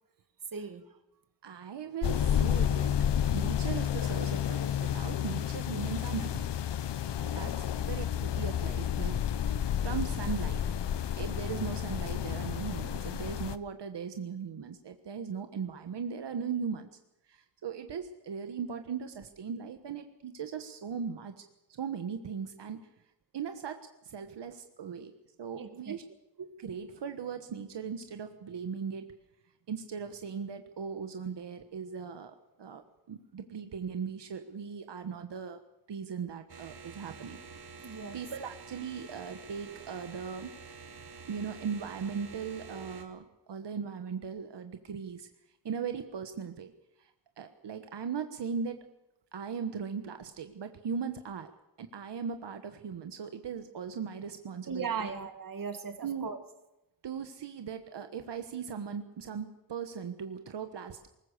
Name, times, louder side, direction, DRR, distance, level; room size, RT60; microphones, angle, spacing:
voice 1, 0.5-1.0 7.2-7.5 25.6-26.0 37.8-38.2 54.7-56.4, right 5 dB, 50° right, 8 dB, 2.1 m, -38 dB
voice 2, 1.4-3.0 3.3-6.3 7.3-9.1 9.6-10.6 11.2-16.9 17.3-21.4 21.8-22.8 23.3-23.8 24.0-25.1 25.4-26.0 26.4-29.1 29.7-32.8 33.1-35.6 35.9-37.4 38.1-40.5 41.3-45.3 45.6-46.7 47.0-48.8 49.3-51.5 51.8-55.1 56.0-56.3 57.0-61.1, right 6 dB, 85° right, 8 dB, 1.4 m, -38 dB
sound 1, 2.0-13.6, left 9 dB, 85° left, 0.9 m, -31 dB
sound 2, 36.5-43.1, right 5 dB, 70° right, 2.5 m, -48 dB
21.5 x 19.5 x 6.7 m, 0.91 s
wide cardioid pair, 165°, 41 cm